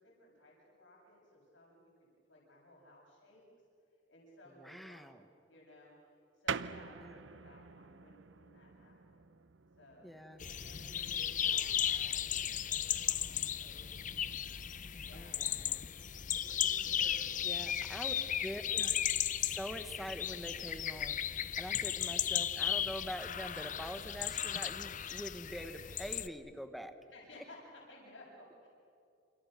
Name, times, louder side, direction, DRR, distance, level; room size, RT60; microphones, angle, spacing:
voice 1, 0.0-3.4 4.1-5.1 5.5-9.3 9.8-14.3 15.0-15.8 16.3-17.8 18.1-18.9 21.9-22.1 27.1-28.7, left 1 dB, 75° left, -3 dB, 7.9 m, -59 dB
voice 2, 4.5-5.2 7.0-7.2 10.0-10.5 15.1-15.8 17.4-18.1 18.4-19.0 19.4-26.9, equal, ahead, 8 dB, 1.2 m, -45 dB
sound 1, 6.5-16.7, right 6 dB, 75° right, 0.7 m, -48 dB
sound 2, 10.4-26.3, left 10 dB, 45° left, 0.7 m, -35 dB
28.5 x 28.5 x 6.8 m, 2.6 s
head